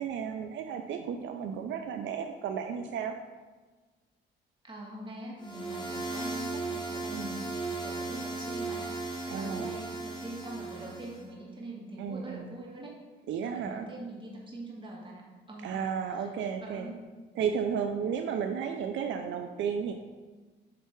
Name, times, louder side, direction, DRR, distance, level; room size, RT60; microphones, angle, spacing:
voice 1, 0.0-3.1 7.1-7.4 9.3-9.7 12.0-12.6 13.3-13.9 15.6-16.9 17.4-19.9, right 7 dB, 70° right, 5 dB, 0.5 m, -33 dB
voice 2, 4.6-13.0 13.4-15.8 16.1-16.3 16.6-17.1, right 1 dB, 25° right, -3 dB, 1.9 m, -44 dB
sound 1, 5.4-11.2, right 3 dB, 20° left, 1.4 m, -36 dB
7.6 x 3.4 x 4.6 m, 1.3 s
cardioid pair, 90°, 20 cm